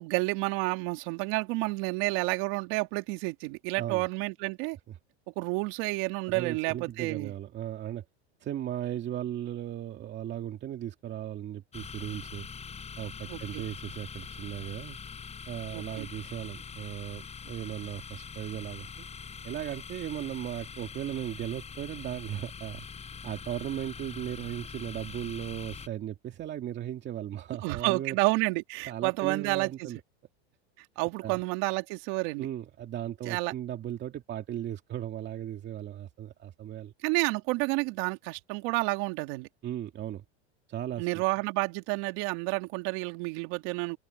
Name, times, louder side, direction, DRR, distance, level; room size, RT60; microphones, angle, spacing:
voice 1, 0.0-4.8 5.4-7.3 13.3-13.6 15.7-16.1 27.6-29.9 30.8-32.5 33.2-33.5 37.0-39.5 41.0-44.0, right 25 dB, 60° right, 2.8 m, -30 dB
voice 2, 6.3-8.0 8.4-12.5 13.0-15.0 15.5-19.1 19.4-22.9 23.2-28.2 28.9-30.0 31.2-31.4 32.4-36.9 39.6-40.2 40.7-41.2, right 11 dB, 30° right, 2.4 m, -37 dB
sound 1, 11.7-25.9, left 6 dB, 20° left, 6.4 m, -43 dB
supercardioid pair, 140°, 33 cm